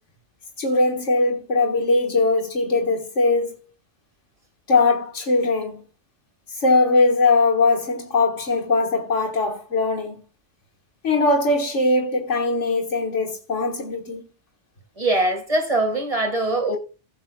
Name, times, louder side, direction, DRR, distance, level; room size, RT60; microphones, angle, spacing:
voice 1, 0.6-3.6 4.7-5.8 6.5-10.2 11.0-14.2, left 3 dB, 80° left, 2.0 m, -20 dB
voice 2, 15.0-16.8, right 2 dB, 30° right, 2.0 m, -22 dB
16.5 x 7.9 x 2.4 m
omnidirectional pair, 1.2 m